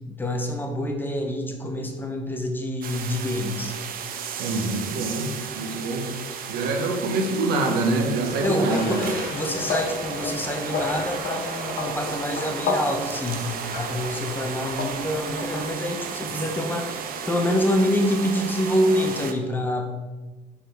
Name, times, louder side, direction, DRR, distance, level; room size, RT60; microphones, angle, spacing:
voice 1, 0.1-3.7 8.4-19.9, left 1 dB, 10° left, 2 dB, 0.9 m, -26 dB
sound 1, 2.8-19.3, right 7 dB, 60° right, 0.7 m, -34 dB
voice 2, 4.4-5.3 5.5-6.1 6.5-9.0, right 2 dB, 85° right, 3 dB, 1.1 m, -25 dB
sound 2, 8.2-15.7, left 4 dB, 65° left, 0.9 m, -32 dB
6.0 x 4.2 x 4.4 m, 1.2 s
cardioid pair, 110°, 17 cm